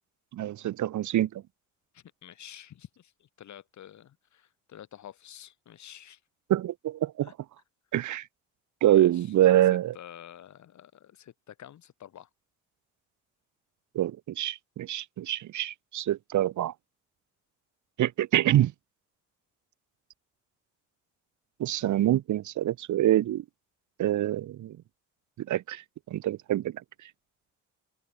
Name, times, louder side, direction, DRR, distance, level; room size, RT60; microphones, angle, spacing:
voice 1, 0.3-1.4 6.5-7.3 7.9-8.2 8.8-9.9 14.0-16.7 18.0-18.7 21.6-23.4 24.0-24.8 25.4-25.8 26.1-26.8, right 13 dB, 75° right, 2.2 m, -25 dB
voice 2, 1.9-6.2 7.2-7.3 8.9-12.3, left 11 dB, 70° left, 6.9 m, -49 dB
cardioid pair, 90°, 30 cm